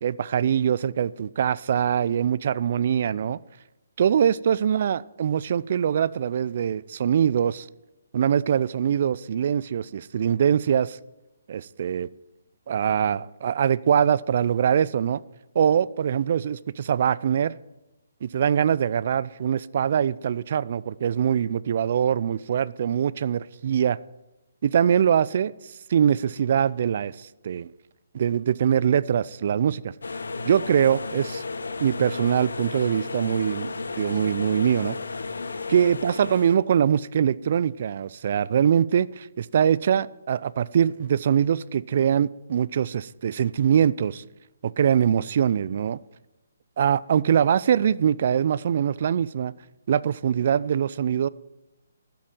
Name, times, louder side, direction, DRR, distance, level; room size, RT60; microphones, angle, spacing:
voice 1, 0.0-3.4 4.0-7.7 8.1-11.0 11.5-12.1 12.7-15.2 15.5-17.5 18.2-24.0 24.6-25.5 25.9-27.7 28.1-29.9 30.5-31.4 31.8-33.7 34.0-35.0 35.7-44.2 44.6-46.0 46.8-49.5 49.9-51.3, right 8 dB, 50° right, 0.5 m, -23 dB
sound 1, 30.0-36.6, left 3 dB, 80° left, 1.2 m, -33 dB
12.5 x 7.7 x 8.9 m
figure-of-eight pair, 145°, 0 cm